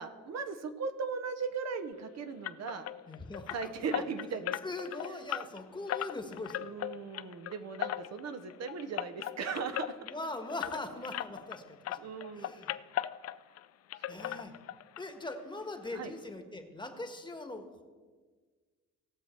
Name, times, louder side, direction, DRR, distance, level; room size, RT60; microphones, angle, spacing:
voice 1, 0.0-2.9 3.5-4.6 6.6-10.0 12.0-12.5 14.1-14.5 15.9-16.1, right 5 dB, 60° right, 8 dB, 1.0 m, -38 dB
sound 1, 2.4-11.6 11.8-13.6 13.9-15.0 15.3-15.4 15.8-15.9 16.3-16.4, left 12 dB, 55° left, 0.4 m, -38 dB
voice 2, 3.1-3.5 3.9-4.1 4.6-6.7 10.0-12.0 12.4-12.7 14.1-14.5 15.0-17.8, left 2 dB, 15° left, 5 dB, 1.4 m, -41 dB
18.0 x 6.3 x 4.5 m, 1.5 s
cardioid pair, 90°, 30 cm